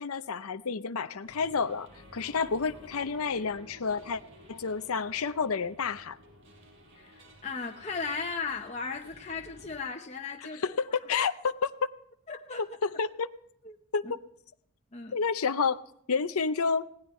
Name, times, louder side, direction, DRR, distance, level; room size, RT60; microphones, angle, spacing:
voice 1, 0.0-4.2 4.5-6.2 10.6-11.7 12.6-13.3 13.9-14.2 15.1-15.8 16.1-16.9, left 5 dB, 80° left, 11 dB, 0.6 m, -30 dB
sound 1, 1.2-9.8, equal, 60° right, 5.2 m, -53 dB
voice 2, 6.9-10.6 12.3-12.6 13.6-13.8 14.0-14.1 14.9-15.2, left 4 dB, 30° left, 1 dB, 1.0 m, -36 dB
20.0 x 17.5 x 3.2 m, 0.71 s
head